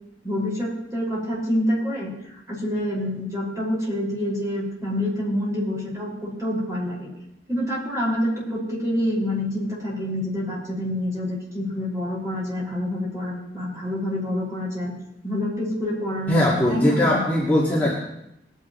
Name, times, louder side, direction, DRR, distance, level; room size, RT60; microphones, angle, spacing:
voice 1, 0.2-2.1 2.5-7.1 7.5-14.9 15.2-17.2, left 1 dB, 20° right, -6 dB, 5.7 m, -27 dB
voice 2, 16.3-18.0, left 1 dB, 10° left, -7 dB, 2.2 m, -20 dB
21.5 x 10.0 x 3.2 m, 0.83 s
head